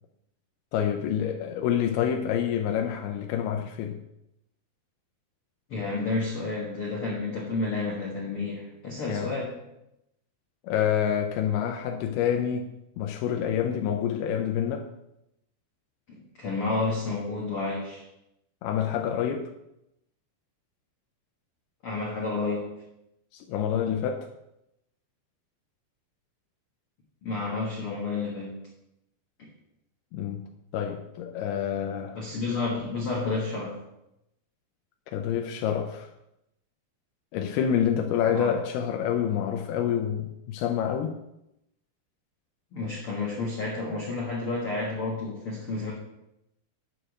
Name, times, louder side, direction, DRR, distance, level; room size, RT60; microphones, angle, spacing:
voice 1, 0.7-4.0 9.1-9.3 10.6-12.7 13.0-14.9 18.6-19.5 23.3-24.3 30.1-30.4 30.7-32.2 35.1-36.1 37.3-41.2, left 9 dB, 80° left, 3 dB, 2.5 m, -27 dB
voice 2, 5.7-9.5 16.1-18.0 21.8-22.7 27.2-28.6 29.4-29.5 32.1-33.8 38.3-38.5 42.7-45.9, left 3 dB, 55° left, -3 dB, 1.5 m, -30 dB
8.7 x 5.0 x 6.3 m, 0.85 s
omnidirectional pair, 4.6 m